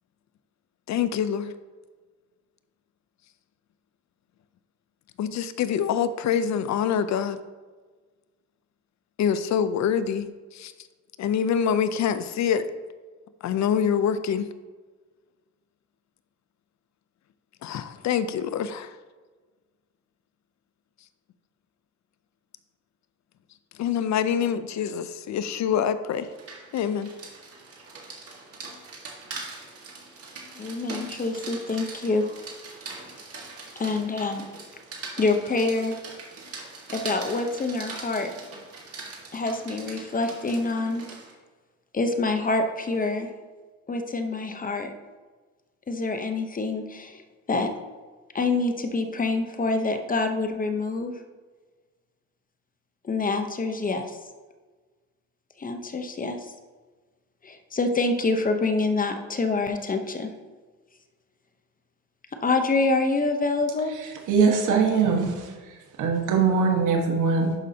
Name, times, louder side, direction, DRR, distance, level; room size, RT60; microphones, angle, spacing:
voice 1, 0.9-1.5 5.2-7.4 9.2-10.7 11.2-12.6 13.4-14.5 17.6-18.9 23.8-26.3 26.7-27.1, left 8 dB, 65° left, 12 dB, 0.6 m, -25 dB
Rain, 26.2-41.3, right 3 dB, 50° right, 1.8 m, -41 dB
voice 2, 30.5-32.3 33.8-34.5 35.2-35.9 36.9-38.3 39.3-41.0 41.9-43.3 43.9-44.9 45.9-47.2 47.5-47.7 48.3-51.1 53.0-54.2 55.6-56.5 57.4-60.3 62.4-63.9, left 3 dB, 30° left, 6 dB, 0.8 m, -26 dB
voice 3, 63.9-67.5, right 5 dB, 85° right, 2 dB, 1.4 m, -22 dB
11.5 x 5.3 x 2.8 m, 1.3 s
cardioid pair, 90°, 30 cm